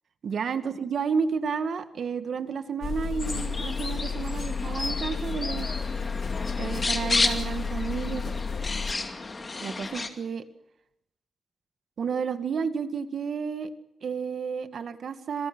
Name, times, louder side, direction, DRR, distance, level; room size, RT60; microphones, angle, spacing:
voice 1, 0.2-5.7 6.6-8.3 9.6-10.4 12.0-13.7 14.0-15.5, right 6 dB, 70° right, 10 dB, 1.9 m, -31 dB
sound 1, 2.8-8.9, left 5 dB, 70° left, 2.3 m, -32 dB
sound 2, 3.2-10.1, left 3 dB, 30° left, 2.5 m, -32 dB
26.0 x 24.0 x 6.2 m, 0.80 s
wide cardioid pair, 135°, 0 cm